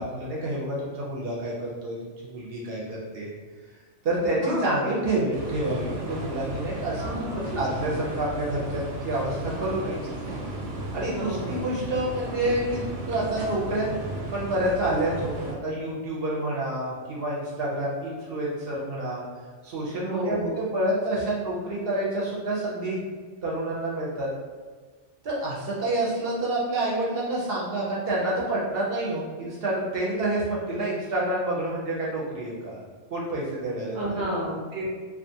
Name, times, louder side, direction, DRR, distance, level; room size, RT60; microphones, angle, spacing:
voice 1, 0.0-2.0 2.2-3.3 4.0-7.1 7.5-10.0 10.9-13.9 14.3-19.2 19.6-23.0 23.4-24.3 25.2-32.8 33.1-34.2, right 1 dB, 60° right, -5 dB, 0.7 m, -28 dB
sound 1, 5.3-15.5, right 2 dB, 85° right, 0.9 m, -35 dB
voice 2, 7.0-7.6 11.1-11.6 20.0-20.5 33.9-34.9, right 1 dB, 30° right, -5 dB, 0.4 m, -31 dB
2.3 x 2.3 x 2.6 m, 1.5 s
omnidirectional pair, 1.2 m